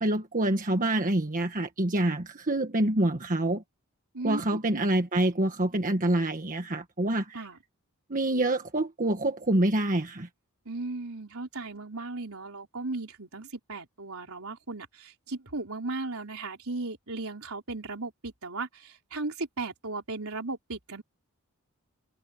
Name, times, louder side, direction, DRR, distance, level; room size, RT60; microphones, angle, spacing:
voice 1, 0.0-3.6 4.2-7.4 8.1-10.3, right 1 dB, 40° right, 1.5 m, -26 dB
voice 2, 4.1-4.8 7.3-7.6 10.7-21.0, right 3 dB, 70° right, 4.2 m, -36 dB
head